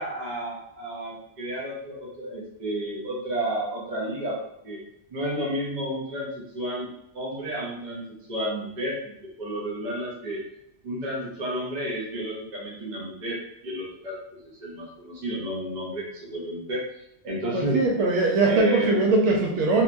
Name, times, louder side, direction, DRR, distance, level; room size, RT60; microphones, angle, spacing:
voice 1, 0.0-4.4 4.6-4.8 5.1-8.0 8.3-9.1 9.4-10.4 10.8-14.2 14.4-16.8 17.2-17.8 18.4-19.0, right 1 dB, 45° right, -5 dB, 0.8 m, -31 dB
voice 2, 17.5-19.8, right 3 dB, 75° right, -1 dB, 0.9 m, -21 dB
3.0 x 2.2 x 2.5 m, 0.80 s
omnidirectional pair, 1.2 m